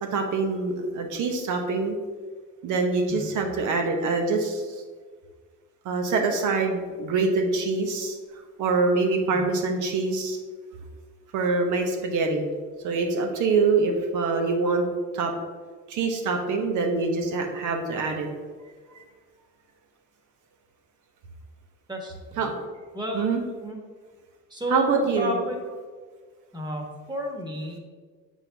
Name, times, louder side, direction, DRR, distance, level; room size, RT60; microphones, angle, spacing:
voice 1, 0.0-2.0 2.6-4.6 5.8-8.2 8.6-10.4 11.3-12.5 12.8-14.9 15.1-15.3 15.9-18.3 22.4-22.5 23.1-23.4 24.7-25.3, right 4 dB, 85° right, 3 dB, 1.0 m, -25 dB
voice 2, 21.9-22.5 22.9-23.3 23.6-23.8 24.5-25.7 26.5-27.8, equal, 15° right, 1 dB, 1.4 m, -32 dB
7.2 x 4.5 x 3.4 m, 1.5 s
cardioid pair, 90°, 30 cm